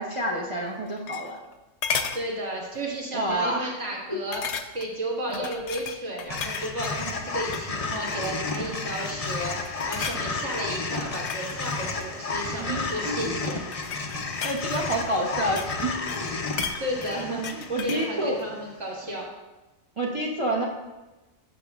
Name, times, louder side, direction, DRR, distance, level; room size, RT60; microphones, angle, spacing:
voice 1, 0.0-1.4 3.1-3.7 5.3-5.5 12.6-13.1 14.4-16.0 17.7-18.4 20.0-20.6, right 1 dB, 30° right, -2 dB, 0.7 m, -28 dB
sound 1, 0.7-1.5 1.8-2.2 2.7-3.0 3.3-3.4 4.3-5.0 5.3-7.0 7.4-7.7 8.1-8.6 9.1-9.4 9.6-10.2 11.0-12.6 13.4-15.8 16.1-18.1 18.4-18.5, left 6 dB, 70° left, 0.9 m, -34 dB
voice 2, 2.1-4.4 4.7-13.6 16.8-19.3, right 1 dB, 70° right, -4 dB, 2.1 m, -33 dB
sound 2, 6.3-18.6, left 4 dB, 40° left, 0.5 m, -32 dB
12.0 x 6.1 x 2.3 m, 1.1 s
omnidirectional pair, 1.3 m